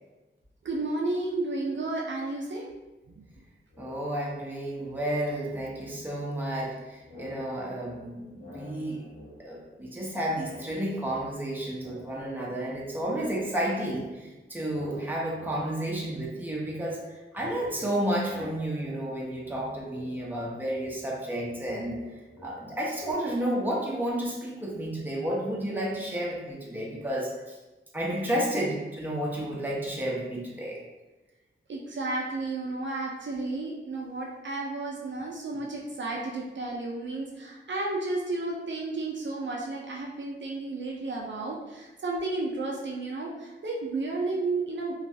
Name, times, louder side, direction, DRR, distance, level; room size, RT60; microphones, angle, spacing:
voice 1, 0.6-2.8 3.2-3.3 31.7-44.9, right 2 dB, 60° right, -2 dB, 0.4 m, -32 dB
sound 1, 3.7-4.6 4.8-6.7 7.0-10.1 10.3-12.9 13.2-23.1, left 1 dB, 80° left, 1.0 m, -50 dB
voice 2, 3.8-9.0 9.4-22.0 22.4-27.6 27.9-30.8, right 1 dB, 10° right, -4 dB, 0.7 m, -31 dB
2.9 x 2.3 x 2.6 m, 1.1 s
wide cardioid pair, 70°, 21 cm